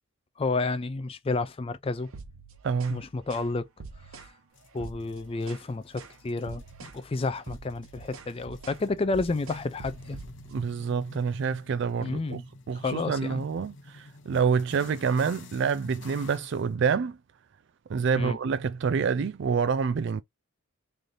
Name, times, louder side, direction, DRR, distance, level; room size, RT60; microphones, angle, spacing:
voice 1, 0.4-2.1 2.9-3.7 4.1-4.3 4.7-10.2 12.0-12.4 12.7-13.4 18.2-18.4, left 3 dB, 25° left, 0.4 m, -30 dB
sound 1, 2.1-3.0 3.3-3.5 3.8-4.3 4.7-5.7 6.0-6.2 6.5-7.0 7.3-10.6, right 4 dB, 80° right, 0.8 m, -45 dB
voice 2, 2.6-3.0 10.5-12.4 12.7-17.2 17.9-20.2, right 6 dB, 55° right, 0.3 m, -27 dB
sound 2, 4.5-16.7, left 3 dB, 60° left, 0.8 m, -50 dB
3.2 x 2.7 x 3.8 m
head